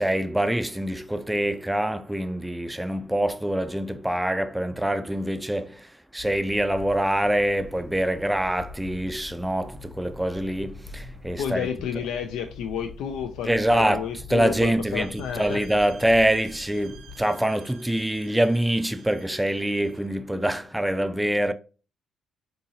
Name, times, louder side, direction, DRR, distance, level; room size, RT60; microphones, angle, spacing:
voice 1, 0.0-11.7 13.4-21.5, right 1 dB, 5° right, 0.4 m, -25 dB
sound 1, 6.2-17.2, left 3 dB, 35° left, 1.1 m, -44 dB
voice 2, 11.4-15.6, left 8 dB, 90° left, 0.3 m, -31 dB
sound 2, 14.8-20.1, right 7 dB, 85° right, 0.8 m, -52 dB
3.7 x 2.7 x 2.7 m
cardioid pair, 90°, 0 cm